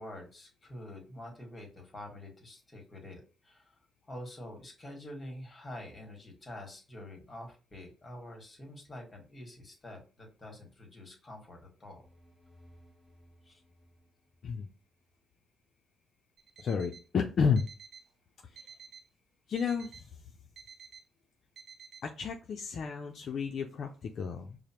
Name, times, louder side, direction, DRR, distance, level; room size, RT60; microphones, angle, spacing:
voice 1, 0.0-3.2 3.5-3.6 4.1-12.0 13.5-13.6, left 1 dB, 25° left, 1 dB, 1.5 m, -46 dB
sound 1, 11.8-15.2, equal, 5° left, 1.4 m, -62 dB
Alarm, 16.4-17.1 17.6-18.1 18.6-19.1 19.6-20.1 20.6-21.1 21.6-22.1, right 6 dB, 55° right, 0.5 m, -52 dB
voice 2, 16.6-17.6 18.5-18.6 19.5-20.1 22.0-24.6, left 6 dB, 60° left, 3 dB, 0.4 m, -31 dB
4.8 x 2.0 x 2.9 m, 0.34 s
cardioid pair, 90°, 0 cm